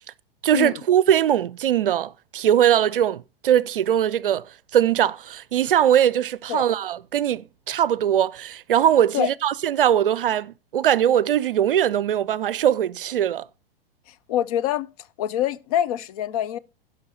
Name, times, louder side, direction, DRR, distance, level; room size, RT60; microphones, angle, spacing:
voice 1, 0.4-4.4 4.7-13.5, right 10 dB, 65° right, 0.5 m, -21 dB
voice 2, 14.3-14.9 15.2-16.6, left 11 dB, 40° left, 0.5 m, -25 dB
16.5 x 5.7 x 4.0 m
figure-of-eight pair, 100°, 30 cm